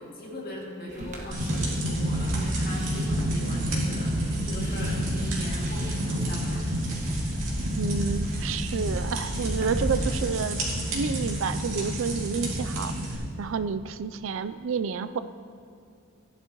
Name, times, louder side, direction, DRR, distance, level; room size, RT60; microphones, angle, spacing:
voice 1, 0.1-6.6, left 1 dB, 45° left, -4 dB, 2.3 m, -39 dB
sound 1, 0.9-10.3, equal, 35° right, 1.4 m, -36 dB
sound 2, 1.3-13.1, right 1 dB, 85° right, 2.4 m, -29 dB
voice 2, 7.7-10.6 10.9-12.9 13.4-15.2, right 5 dB, 70° right, 12 dB, 0.4 m, -29 dB
15.5 x 10.5 x 3.0 m, 2.6 s
head